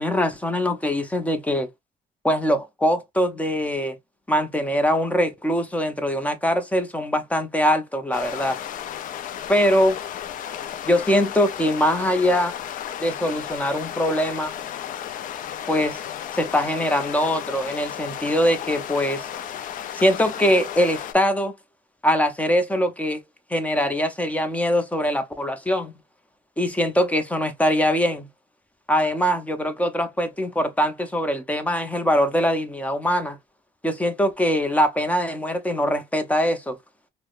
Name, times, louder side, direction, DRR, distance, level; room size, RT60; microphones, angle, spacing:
voice 1, 0.0-1.7 2.2-4.0 4.3-8.6 9.5-10.0 10.8-12.5 13.0-14.6 15.7-16.0 16.3-19.2 19.9-21.5 22.0-23.2 23.5-25.9 26.6-28.3 28.9-33.4 33.8-36.8, equal, 10° left, 0.6 m, -22 dB
sound 1, 8.1-21.1, left 10 dB, 60° left, 0.4 m, -34 dB
4.6 x 2.1 x 2.4 m
cardioid pair, 130°, 16 cm